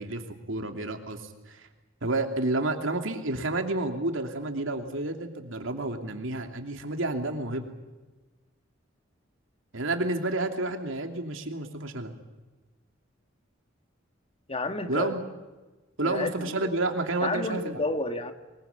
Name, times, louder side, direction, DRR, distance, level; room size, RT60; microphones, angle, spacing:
voice 1, 0.0-1.7 2.0-7.7 9.7-12.1 14.9-15.2 16.0-17.8, right 2 dB, 75° right, 5 dB, 2.9 m, -30 dB
voice 2, 14.5-15.1 16.0-16.7 17.2-18.3, left 2 dB, 30° left, 8 dB, 1.9 m, -31 dB
24.0 x 22.0 x 8.4 m, 1.2 s
head